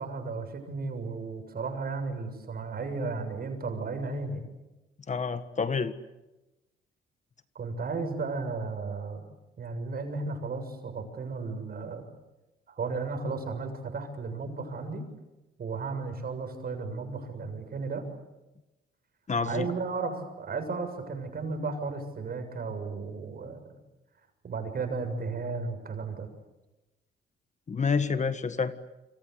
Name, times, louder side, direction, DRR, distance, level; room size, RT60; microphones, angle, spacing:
voice 1, 0.0-4.4 7.6-9.2 9.6-12.1 12.7-15.0 15.6-18.0 19.4-23.7 24.4-26.3, right 4 dB, 50° right, 7 dB, 7.1 m, -34 dB
voice 2, 5.1-5.9 19.3-19.7 27.7-28.7, left 5 dB, 35° left, 11 dB, 1.6 m, -28 dB
28.0 x 25.5 x 8.2 m, 1.0 s
cardioid pair, 90°, 20 cm